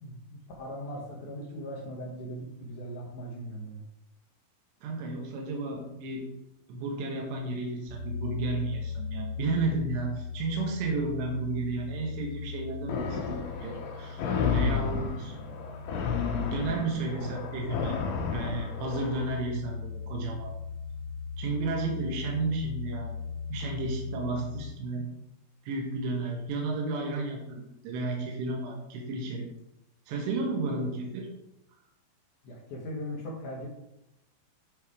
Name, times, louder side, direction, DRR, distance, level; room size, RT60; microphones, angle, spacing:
voice 1, 0.0-3.8 14.8-15.1 32.4-33.7, equal, 65° left, -3 dB, 2.2 m, -39 dB
voice 2, 4.8-6.3 6.7-15.4 16.5-18.0 18.3-20.5 21.4-23.2 23.5-25.1 25.6-29.5 30.1-31.3, right 3 dB, 85° right, -1 dB, 3.4 m, -33 dB
sound 1, 7.9-24.6, left 5 dB, 30° left, 2.3 m, -39 dB
sound 2, 12.9-19.3, left 6 dB, 90° left, 3.3 m, -32 dB
10.0 x 3.8 x 4.7 m, 0.87 s
omnidirectional pair, 4.9 m